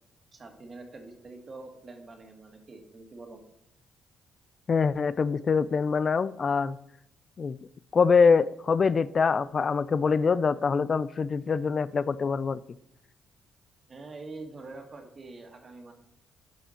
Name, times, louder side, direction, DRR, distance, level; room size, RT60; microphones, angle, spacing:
voice 1, 0.3-3.4 13.9-15.9, right 3 dB, 35° right, 4 dB, 2.1 m, -45 dB
voice 2, 4.7-6.8 7.4-7.6 7.9-12.6, left 5 dB, 40° left, 16 dB, 0.3 m, -24 dB
11.5 x 5.6 x 4.3 m, 0.82 s
cardioid pair, 90°, 0 cm